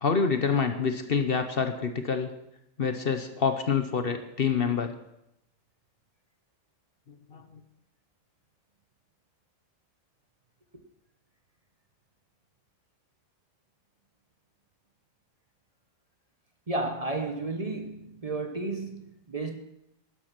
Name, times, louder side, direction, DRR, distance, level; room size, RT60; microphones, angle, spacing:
voice 1, 0.0-2.3 2.8-4.9 7.3-7.4, left 5 dB, 50° left, 1.0 m, -27 dB
voice 2, 16.7-19.6, right 2 dB, 30° right, 1.1 m, -32 dB
11.5 x 11.5 x 6.0 m
omnidirectional pair, 1.4 m